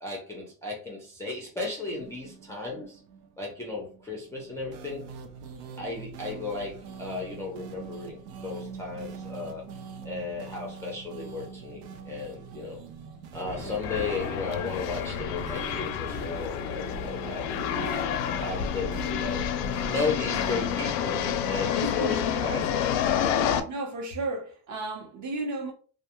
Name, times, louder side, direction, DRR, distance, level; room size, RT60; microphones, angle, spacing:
voice 1, 0.0-3.0 3.4-5.1 5.8-9.6 10.0-12.8 13.3-17.5 18.4-19.5 19.8-23.4, left 3 dB, 5° left, 0.4 m, -35 dB
sound 1, 1.8-21.6, right 6 dB, 85° right, 0.6 m, -43 dB
sound 2, 13.5-23.6, left 9 dB, 80° left, 0.5 m, -29 dB
voice 2, 21.8-22.6 23.7-25.7, right 2 dB, 40° right, 0.7 m, -34 dB
2.4 x 2.2 x 2.8 m
cardioid pair, 130°, 46 cm